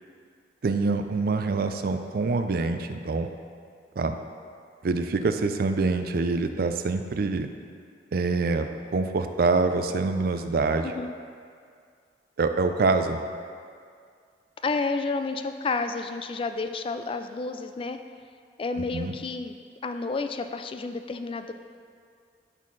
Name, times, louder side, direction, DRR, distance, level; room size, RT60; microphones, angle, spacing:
voice 1, 0.6-3.3 4.0-4.2 4.8-7.5 8.1-10.9 12.4-13.2 18.9-19.1, right 3 dB, 55° right, 8 dB, 0.4 m, -25 dB
voice 2, 14.6-18.0 18.6-21.5, left 3 dB, 30° left, 8 dB, 0.3 m, -30 dB
12.5 x 4.2 x 3.2 m, 2.2 s
head